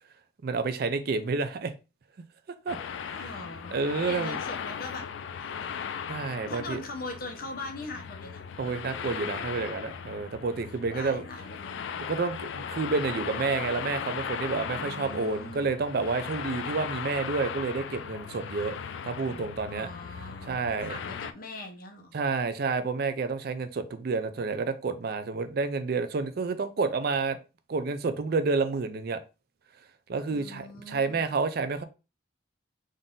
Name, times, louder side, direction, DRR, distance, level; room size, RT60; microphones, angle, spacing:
voice 1, 0.4-1.7 2.7-3.3 3.7-4.4 6.1-6.8 8.6-11.2 12.1-18.7 19.0-19.9 20.5-21.0 22.1-27.4 27.7-29.2 30.1-31.8, right 4 dB, 50° right, 0.4 m, -29 dB
sound 1, 2.7-21.3, left 7 dB, 65° left, 0.3 m, -37 dB
voice 2, 3.2-3.8 4.1-5.1 5.4-5.9 6.5-8.4 10.9-11.9 14.7-15.7 19.7-20.6 20.9-22.2 30.3-31.2, left 2 dB, 45° left, 0.9 m, -41 dB
3.9 x 2.5 x 3.7 m
head